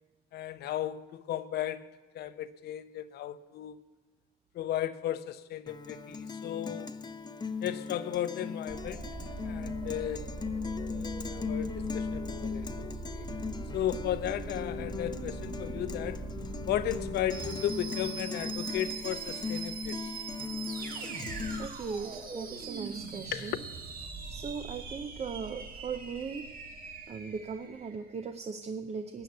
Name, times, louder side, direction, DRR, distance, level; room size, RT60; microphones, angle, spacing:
voice 1, 0.3-3.8 4.5-6.9 7.6-10.3 10.7-13.3 13.7-16.3 16.7-20.1 23.3-23.6, left 11 dB, 70° left, 0.7 m, -35 dB
Guitar, 5.7-21.7, left 5 dB, 25° left, 0.7 m, -38 dB
sound 1, 8.7-28.0, right 4 dB, 55° right, 1.8 m, -41 dB
voice 2, 21.6-23.6 24.3-26.5 27.1-29.2, right 5 dB, 40° right, 0.6 m, -38 dB
13.0 x 8.0 x 8.1 m
supercardioid pair, 80°, 18 cm